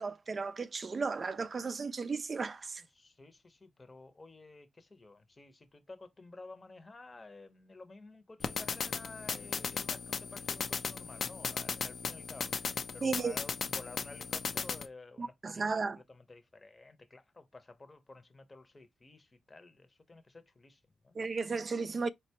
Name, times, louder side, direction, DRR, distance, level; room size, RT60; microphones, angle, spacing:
voice 1, 0.0-2.8 13.0-13.3 15.2-16.0 21.2-22.1, right 4 dB, 45° right, 0.4 m, -34 dB
voice 2, 2.9-21.2, left 3 dB, 30° left, 0.7 m, -52 dB
sound 1, 8.4-14.9, left 5 dB, 60° left, 0.4 m, -37 dB
3.9 x 2.2 x 2.8 m
cardioid pair, 65°, 0 cm